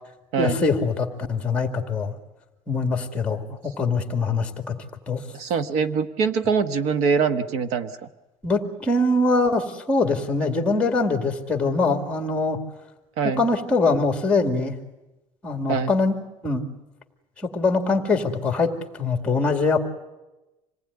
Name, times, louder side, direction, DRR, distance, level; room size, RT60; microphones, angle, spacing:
voice 1, 0.4-2.1 2.7-4.7 5.1-5.2 8.4-12.6 13.4-14.8 15.4-16.2 16.4-16.6 17.4-19.8, left 3 dB, 10° left, 4 dB, 2.2 m, -23 dB
voice 2, 5.3-7.9 13.2-13.4 15.7-15.9, right 5 dB, 65° right, 10 dB, 1.3 m, -23 dB
26.5 x 19.0 x 9.7 m, 1.0 s
cardioid pair, 175°, 12 cm